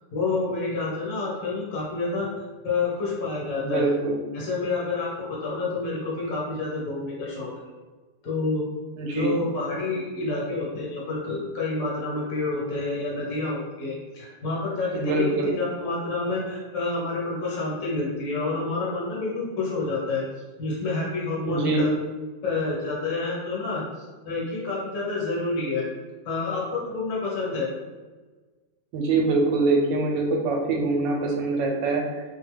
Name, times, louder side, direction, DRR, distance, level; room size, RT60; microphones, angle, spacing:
voice 1, 0.1-2.3 2.6-3.9 4.3-7.5 8.2-8.6 9.1-20.2 20.6-21.9 22.4-25.9 26.2-27.7, left 3 dB, 55° left, -5 dB, 1.3 m, -28 dB
voice 2, 3.6-4.2 9.0-9.4 14.9-15.5 21.5-21.8 28.9-32.2, right 3 dB, 90° right, 1 dB, 1.3 m, -24 dB
3.0 x 2.2 x 3.1 m, 1.3 s
omnidirectional pair, 1.9 m